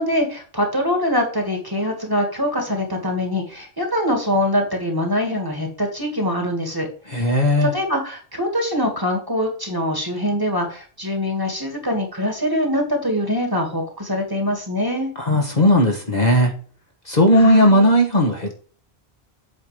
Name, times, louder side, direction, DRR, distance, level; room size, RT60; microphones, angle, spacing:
voice 1, 0.0-7.3 7.6-15.1 17.3-17.9, left 1 dB, 20° right, 2 dB, 2.0 m, -23 dB
voice 2, 7.1-7.7 15.2-16.5 17.1-18.5, equal, 40° left, 2 dB, 1.4 m, -16 dB
8.1 x 4.7 x 5.0 m, 0.41 s
omnidirectional pair, 1.1 m